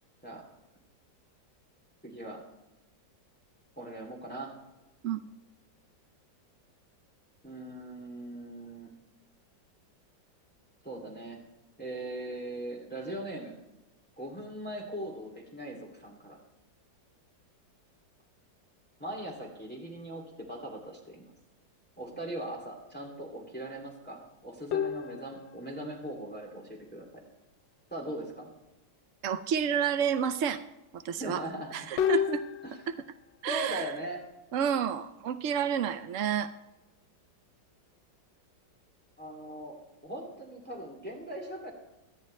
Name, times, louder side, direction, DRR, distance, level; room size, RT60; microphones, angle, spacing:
voice 1, 2.0-2.4 3.8-4.5 7.4-8.9 10.8-11.4 11.8-13.5 14.2-16.4 19.0-21.3 22.0-27.2 27.9-28.5 31.0-31.7 32.6-32.8 33.5-34.2 39.2-39.8 40.0-41.7, right 1 dB, 5° left, 0 dB, 2.6 m, -40 dB
sound 1, 24.7-25.9 32.0-33.0, left 8 dB, 80° left, 1.4 m, -30 dB
voice 2, 29.2-30.6 30.9-31.4 31.7-32.4 32.9-33.0 33.4-33.9 34.5-36.5, right 8 dB, 70° right, 10 dB, 0.7 m, -30 dB
24.0 x 10.5 x 3.2 m, 0.97 s
omnidirectional pair, 2.0 m